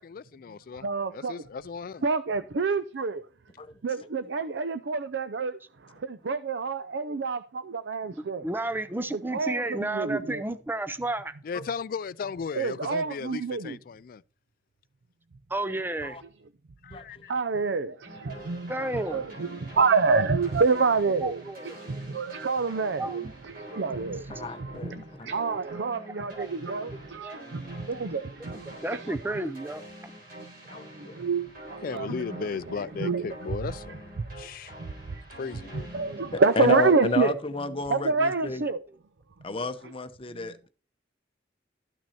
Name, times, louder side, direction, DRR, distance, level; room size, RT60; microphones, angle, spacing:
voice 1, 0.0-2.0 11.4-14.2 16.8-17.3 31.8-34.7 35.3-35.9, left 5 dB, 55° left, 0.3 m, -36 dB
voice 2, 0.8-1.4 2.0-3.2 3.8-8.5 9.1-10.4 12.5-13.8 17.3-29.5 30.3-30.5 30.9-32.5 33.0-33.3 34.2-34.3 34.8-35.2 35.7-37.3 37.9-38.8 39.5-39.6 40.3-40.5, right 4 dB, 90° right, 0.5 m, -28 dB
voice 3, 8.4-11.3 15.5-16.2 18.7-19.3 21.2-21.6 23.0-23.3 24.6-24.7 26.0-26.8 27.2-27.4 28.8-29.8 38.2-38.4, right 2 dB, 10° right, 0.5 m, -32 dB
voice 4, 16.9-17.2 18.3-18.5 24.3-25.3 26.2-26.3 29.1-29.2 30.4-30.5 30.7-31.2 36.6-38.6 39.4-40.7, left 2 dB, 30° left, 0.8 m, -32 dB
sound 1, 18.0-36.9, right 1 dB, 55° right, 3.9 m, -47 dB
13.0 x 6.1 x 4.2 m
head